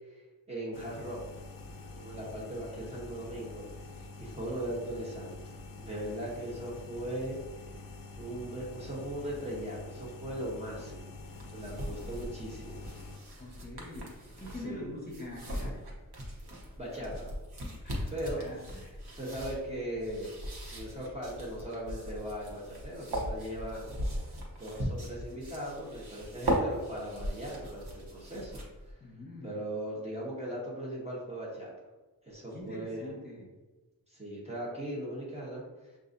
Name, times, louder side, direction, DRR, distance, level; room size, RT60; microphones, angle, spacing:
voice 1, 0.1-1.2 2.0-5.4 5.8-7.4 8.2-11.1 11.5-12.8 13.4-13.5 14.6-14.9 16.8-17.3 18.1-18.4 19.1-20.4 20.7-23.9 24.2-28.6 28.9-29.0 29.4-31.7 32.2-33.1 34.1-35.9, right 1 dB, 15° right, -6 dB, 0.9 m, -39 dB
sound 1, 0.7-13.2, left 3 dB, 60° left, 0.5 m, -46 dB
sound 2, 11.2-28.9, equal, 85° right, 1.0 m, -39 dB
voice 2, 13.4-15.8 17.8-19.0 29.0-29.6 32.5-33.5, left 1 dB, 25° left, -3 dB, 1.0 m, -45 dB
6.1 x 2.5 x 2.6 m, 1.2 s
wide cardioid pair, 120°, 37 cm